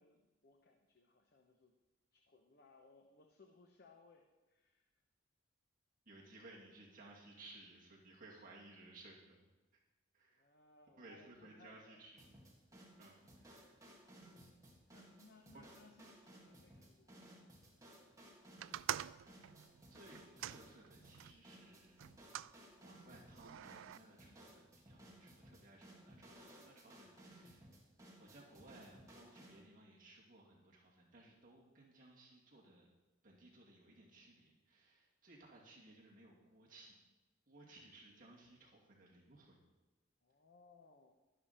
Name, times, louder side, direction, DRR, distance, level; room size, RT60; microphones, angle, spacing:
voice 1, 0.0-1.7 2.1-4.9 10.3-12.0 14.9-18.2 40.2-41.1, left 3 dB, 55° left, 3 dB, 0.9 m, -66 dB
voice 2, 6.1-9.5 10.1-10.4 11.0-12.3 13.0-13.7 15.5-15.7 19.2-19.3 19.9-22.1 22.8-27.7 28.2-32.9 33.2-37.0 37.5-39.7, right 2 dB, 45° right, -4 dB, 2.5 m, -60 dB
sound 1, 12.2-29.6, right 1 dB, 15° right, 1.9 m, -60 dB
sound 2, 18.6-21.4 22.0-22.6 23.3-24.0, right 11 dB, 85° right, 0.3 m, -45 dB
12.0 x 10.0 x 4.3 m, 1.1 s
head